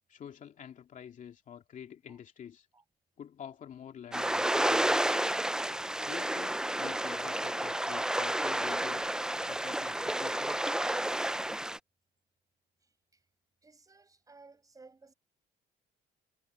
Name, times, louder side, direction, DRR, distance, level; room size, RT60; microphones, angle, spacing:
voice 1, 0.1-2.7 3.2-5.2 6.1-9.0 9.4-10.7, left 8 dB, 50° left, 2.5 m, -47 dB
sound 1, 4.1-11.8, right 1 dB, 5° right, 0.5 m, -31 dB
voice 2, 12.8-13.2 13.6-15.1, right 3 dB, 20° right, 6.5 m, -58 dB
cardioid pair, 110°, 17 cm